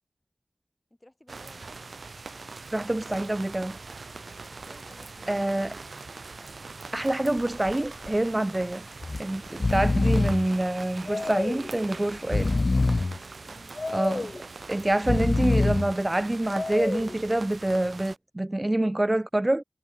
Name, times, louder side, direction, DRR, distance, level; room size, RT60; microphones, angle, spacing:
voice 1, 1.0-1.9 4.4-6.1 12.0-13.0 13.4-13.8, left 1 dB, 20° left, 6.1 m, -55 dB
sound 1, 1.3-18.2, right 4 dB, 85° right, 2.3 m, -42 dB
sound 2, 2.6-12.6, equal, ahead, 5.7 m, -56 dB
voice 2, 2.7-3.8 5.3-5.7 6.9-8.9 9.2-12.5 13.9-14.3 14.7-19.6, right 1 dB, 25° right, 0.4 m, -26 dB
Breathing, 7.4-7.7 8.1-8.2 9.0-9.2 9.5-10.5 11.1-11.7 12.2-13.2 13.8-14.4 14.9-15.9 16.5-17.2, left 3 dB, 60° left, 0.8 m, -26 dB
wide cardioid pair, 60°, 0 cm